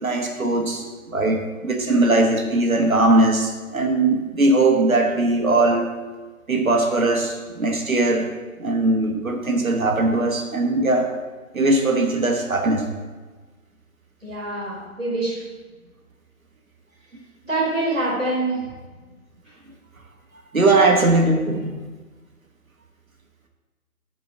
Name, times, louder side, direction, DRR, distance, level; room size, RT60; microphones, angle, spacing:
voice 1, 0.0-5.9 6.5-8.3 8.6-11.1 11.5-12.9 20.5-21.8, right 2 dB, 65° right, 2 dB, 1.2 m, -20 dB
voice 2, 14.2-15.4 17.4-18.7 19.4-19.6, right 2 dB, 5° left, -21 dB, 2.4 m, -25 dB
7.6 x 4.8 x 6.5 m, 1.3 s
figure-of-eight pair, 180°, 44 cm